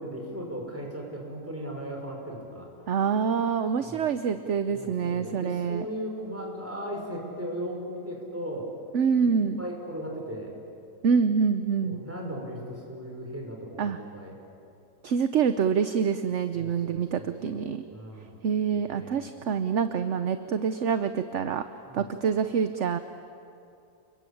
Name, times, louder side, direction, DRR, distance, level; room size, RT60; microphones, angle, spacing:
voice 1, 0.0-2.7 3.8-4.1 4.7-8.7 9.2-9.3 9.6-10.5 11.8-14.3 16.5-18.3 18.7-19.3 21.9-22.1, equal, 10° right, -1 dB, 5.6 m, -37 dB
voice 2, 2.9-5.8 8.9-9.6 11.0-12.0 13.8-14.0 15.0-17.8 18.4-21.6 21.9-23.0, right 6 dB, 55° right, 10 dB, 1.0 m, -26 dB
29.5 x 22.0 x 8.6 m, 2.6 s
omnidirectional pair, 1.7 m